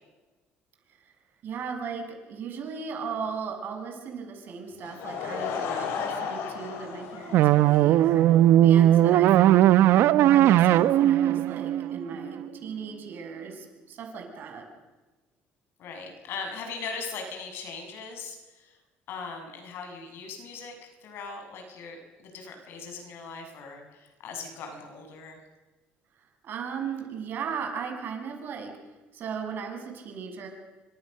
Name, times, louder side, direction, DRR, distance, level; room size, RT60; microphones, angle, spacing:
voice 1, 1.4-8.2 8.6-14.6 26.4-28.7 29.1-30.5, right 6 dB, 55° right, 3 dB, 7.0 m, -37 dB
Laughter / Crowd, 4.8-8.3, left 6 dB, 80° left, 5.2 m, -34 dB
sound 1, 7.3-12.5, right 13 dB, 70° right, 0.9 m, -19 dB
voice 2, 15.8-18.8 19.1-25.4, left 4 dB, 65° left, 4 dB, 7.2 m, -39 dB
28.5 x 25.5 x 6.7 m, 1.2 s
cardioid pair, 130°, 4 cm